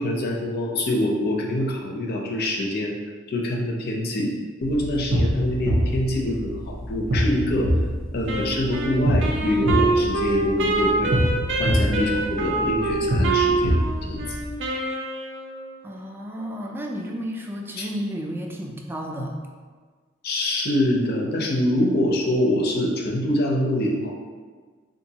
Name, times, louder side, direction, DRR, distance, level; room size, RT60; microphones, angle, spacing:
voice 1, 0.0-3.0 3.3-4.3 4.6-7.7 8.1-11.1 11.6-13.8 14.1-14.4 17.8-17.9 20.2-24.2, left 1 dB, 55° left, -1 dB, 0.6 m, -25 dB
sound 1, 4.6-14.6, equal, 85° right, 0.9 m, -25 dB
Wind instrument woodwind instrument, 8.3-15.8, right 3 dB, 65° right, 0.5 m, -26 dB
voice 2, 15.8-19.3, equal, 10° right, 0 dB, 0.3 m, -32 dB
3.7 x 2.5 x 2.8 m, 1.5 s
head